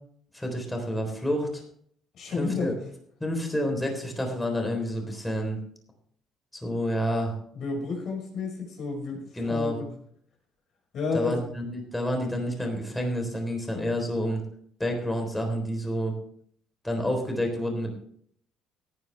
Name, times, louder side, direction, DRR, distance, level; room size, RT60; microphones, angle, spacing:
voice 1, 0.3-1.6 2.4-2.7 3.2-5.6 6.5-7.3 9.4-9.8 11.1-14.4 14.8-16.1 16.8-17.9, equal, 10° left, 2 dB, 3.9 m, -29 dB
voice 2, 2.1-2.7 7.5-9.9 10.9-11.4, left 4 dB, 55° left, 2 dB, 5.6 m, -31 dB
17.0 x 9.6 x 3.4 m, 0.63 s
cardioid pair, 120°, 0 cm